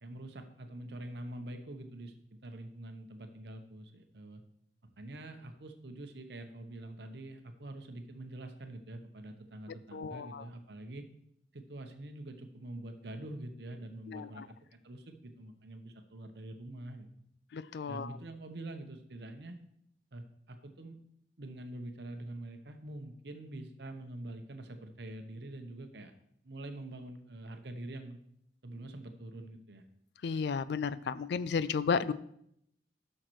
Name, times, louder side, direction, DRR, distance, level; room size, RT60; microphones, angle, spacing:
voice 1, 0.0-2.1 2.4-4.4 5.0-11.1 11.5-14.4 14.7-17.1 17.9-19.6 20.1-21.0 21.4-26.1 26.4-28.2 28.6-29.8, right 1 dB, 65° right, 6 dB, 0.9 m, -45 dB
voice 2, 9.9-10.4 14.1-14.4 17.5-18.1 30.2-32.1, left 5 dB, 65° left, 16 dB, 0.3 m, -33 dB
11.5 x 6.5 x 3.1 m, 0.73 s
head